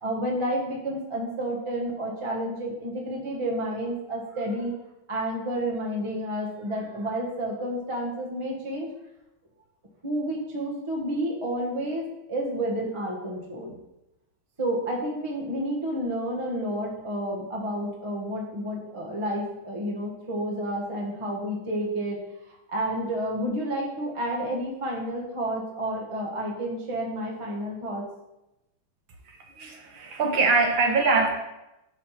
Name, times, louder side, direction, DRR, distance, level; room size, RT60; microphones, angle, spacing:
voice 1, 0.0-4.7 5.1-8.9 10.0-13.7 14.6-22.2 22.5-28.0, right 1 dB, 30° right, -2 dB, 0.5 m, -30 dB
voice 2, 29.3-31.3, right 3 dB, 70° right, 3 dB, 1.6 m, -23 dB
6.2 x 3.1 x 5.5 m, 0.92 s
omnidirectional pair, 2.3 m